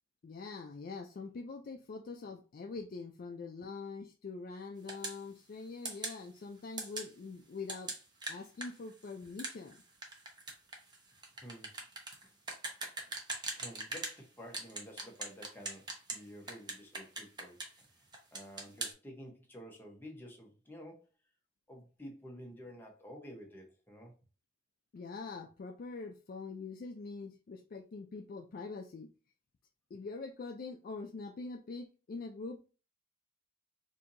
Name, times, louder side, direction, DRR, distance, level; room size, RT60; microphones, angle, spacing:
voice 1, 0.2-7.9 8.3-9.8 24.9-29.1 29.9-32.6, left 4 dB, 50° left, 0.3 m, -44 dB
sound 1, 4.9-5.2 5.8-6.2 6.8-7.1 7.7-14.2 14.5-16.2 16.5-17.8 18.1-18.9, right 2 dB, 25° right, 0.8 m, -41 dB
voice 2, 11.3-11.8 13.5-21.1 21.7-24.1, equal, 10° left, 0.9 m, -51 dB
4.4 x 2.7 x 2.6 m
head